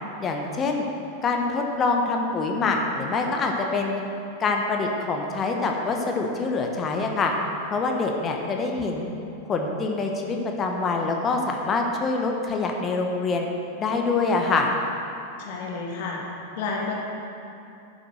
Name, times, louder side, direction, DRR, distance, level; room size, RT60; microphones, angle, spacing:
voice 1, 0.2-0.9 1.2-4.0 4.4-7.3 7.7-9.1 9.5-13.5 13.8-14.7, left 3 dB, 25° left, 2 dB, 1.2 m, -25 dB
voice 2, 15.4-16.2 16.6-16.9, left 4 dB, 50° left, -2 dB, 2.2 m, -30 dB
11.0 x 7.0 x 6.3 m, 2.7 s
figure-of-eight pair, 90°, 0 cm